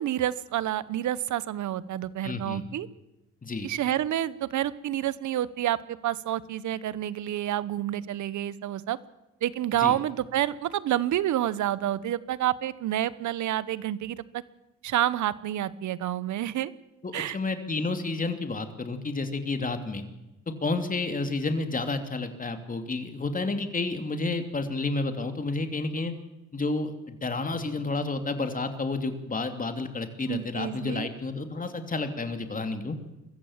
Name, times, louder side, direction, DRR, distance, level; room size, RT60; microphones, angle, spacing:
voice 1, 0.0-2.9 3.6-9.0 9.4-14.4 14.8-16.7 17.1-17.4 30.3-31.1, right 12 dB, 70° right, 18 dB, 1.1 m, -29 dB
voice 2, 2.2-2.6 3.4-3.7 9.8-10.0 17.0-20.0 20.6-26.1 26.5-33.0, left 3 dB, 25° left, 7 dB, 2.9 m, -30 dB
23.5 x 15.0 x 7.4 m, 0.99 s
cardioid pair, 90°, 30 cm